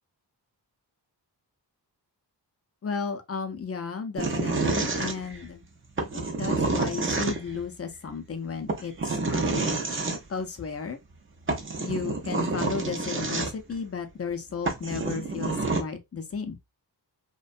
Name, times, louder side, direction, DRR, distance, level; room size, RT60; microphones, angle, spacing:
voice 1, 2.8-5.6 6.1-8.9 9.3-9.8 10.3-11.0 11.8-16.6, left 5 dB, 35° left, 0.5 m, -34 dB
sound 1, 4.2-5.5 6.0-7.6 8.7-10.2 11.1-11.2 11.5-13.8 14.3-14.4 14.7-15.8, right 3 dB, 30° right, 0.6 m, -28 dB
2.5 x 2.2 x 2.4 m
wide cardioid pair, 85°, 41 cm